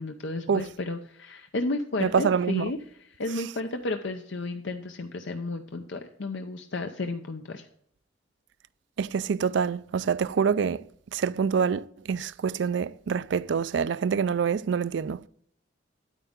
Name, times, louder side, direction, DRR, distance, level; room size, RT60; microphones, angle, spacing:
voice 1, 0.0-2.8 3.1-7.7, left 2 dB, 70° left, 0.7 m, -33 dB
voice 2, 2.0-2.7 9.0-10.9 11.1-15.2, right 6 dB, 70° right, 0.4 m, -26 dB
9.1 x 9.0 x 3.6 m
head